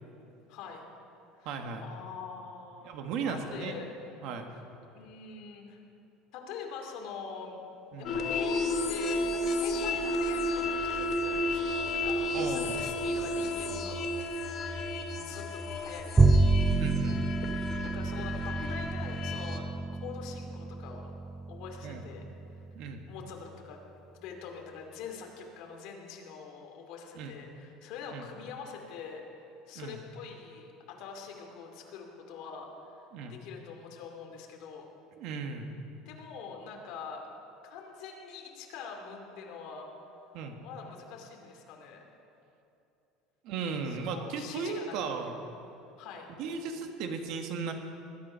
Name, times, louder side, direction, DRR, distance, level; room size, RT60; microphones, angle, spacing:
voice 1, 0.5-0.9 1.4-2.9 3.2-4.3 4.9-5.8 6.3-7.6 8.0-8.6 8.9-14.1 15.1-16.4 16.7-16.8 17.8-19.7 20.0-21.1 21.5-22.2 23.1-23.8 24.1-29.2 29.7-32.7 33.2-34.9 35.9-37.3 37.6-39.9 40.6-42.0 43.8-45.3 46.0-46.3, left 6 dB, 55° left, 2 dB, 2.4 m, -44 dB
voice 2, 1.4-1.9 2.8-3.7 4.2-4.5 7.9-8.2 12.3-12.8 16.8-17.2 21.8-22.0 22.7-23.0 27.1-27.3 28.1-28.2 29.7-30.0 33.1-33.3 35.2-35.8 40.3-40.6 43.4-45.4 46.3-47.7, right 5 dB, 55° right, 4 dB, 1.6 m, -36 dB
sound 1, 8.1-19.6, left 1 dB, 35° left, 1.1 m, -32 dB
Bowed string instrument, 16.2-22.6, right 3 dB, 10° right, 0.3 m, -28 dB
20.5 x 11.0 x 5.6 m, 2.8 s
cardioid pair, 175°, 0 cm